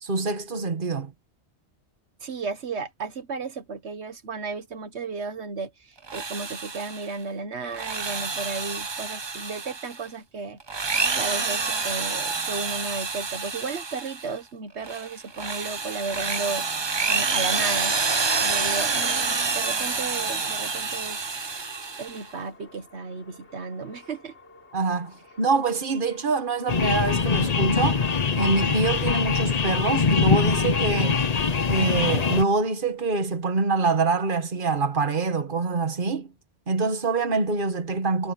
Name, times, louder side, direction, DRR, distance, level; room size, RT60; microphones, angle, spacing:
voice 1, 0.0-1.1 24.7-28.1 28.4-31.3 31.7-36.3 36.7-38.3, right 4 dB, 50° right, 1.7 m, -25 dB
voice 2, 2.2-10.6 11.2-18.0 18.4-21.6 22.0-24.3, right 4 dB, 80° right, 1.5 m, -34 dB
Drill, 6.0-7.1 7.6-10.0 10.6-14.3 14.8-22.3, right 4 dB, 30° right, 0.7 m, -28 dB
sound 1, 15.1-33.0, left 3 dB, 90° left, 5.2 m, -53 dB
sound 2, 26.7-32.4, left 5 dB, 40° left, 0.9 m, -23 dB
omnidirectional pair, 1.1 m